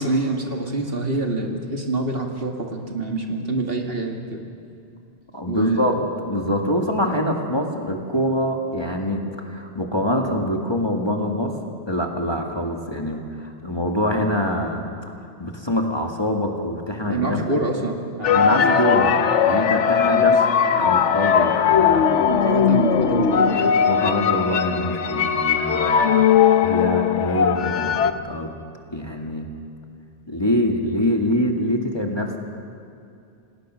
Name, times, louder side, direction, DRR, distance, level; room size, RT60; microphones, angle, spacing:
voice 1, 0.0-4.4 5.5-5.9 17.1-19.1 20.1-20.3 20.7-21.1 22.3-23.7, right 2 dB, 55° right, 2 dB, 2.3 m, -26 dB
voice 2, 5.3-5.9 6.2-11.5 11.9-14.8 15.4-17.6 18.3-19.1 19.4-20.5 20.7-22.3 23.9-26.2 26.6-28.5 28.9-29.5 30.3-32.4, left 1 dB, 20° left, 2 dB, 1.9 m, -24 dB
sound 1, 18.2-28.1, left 7 dB, 90° left, 1.1 m, -19 dB
27.5 x 18.5 x 6.4 m, 2.6 s
omnidirectional pair, 1.2 m